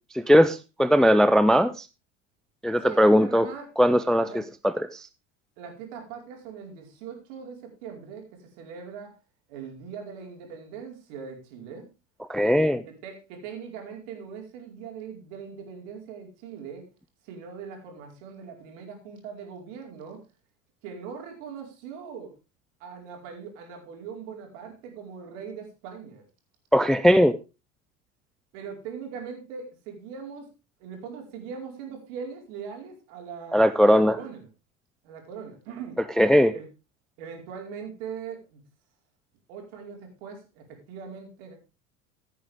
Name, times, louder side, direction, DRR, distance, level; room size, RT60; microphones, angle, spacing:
voice 1, 0.1-1.8 2.6-3.5 3.8-4.3 4.6-5.0 12.3-12.8 26.7-27.4 33.5-34.2 36.2-36.5, equal, ahead, 13 dB, 0.6 m, -19 dB
voice 2, 2.8-3.7 4.2-4.4 5.6-9.2 9.5-11.9 12.8-16.9 17.2-20.2 20.8-22.3 22.8-26.2 28.5-30.5 30.8-34.5 35.0-36.0 36.5-36.7 37.2-38.6 39.5-41.5, right 6 dB, 60° right, 2 dB, 4.8 m, -40 dB
15.5 x 9.3 x 3.6 m, 0.28 s
figure-of-eight pair, 75°, 41 cm